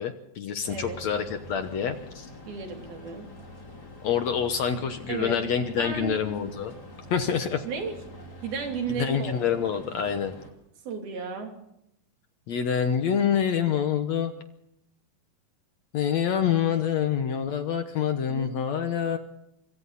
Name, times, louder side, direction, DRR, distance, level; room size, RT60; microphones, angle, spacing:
voice 1, 0.0-2.3 4.0-6.7 7.1-7.6 8.9-10.3 12.5-14.3 15.9-19.2, left 8 dB, 65° left, 8 dB, 2.0 m, -26 dB
sound 1, 0.6-10.5, left 1 dB, 30° left, 3.4 m, -45 dB
voice 2, 2.5-3.3 5.1-5.4 5.8-6.3 7.6-8.0 8.4-9.6 10.8-11.5 18.3-18.5, right 5 dB, 85° right, 2 dB, 4.9 m, -34 dB
26.0 x 25.0 x 4.2 m, 0.79 s
omnidirectional pair, 4.1 m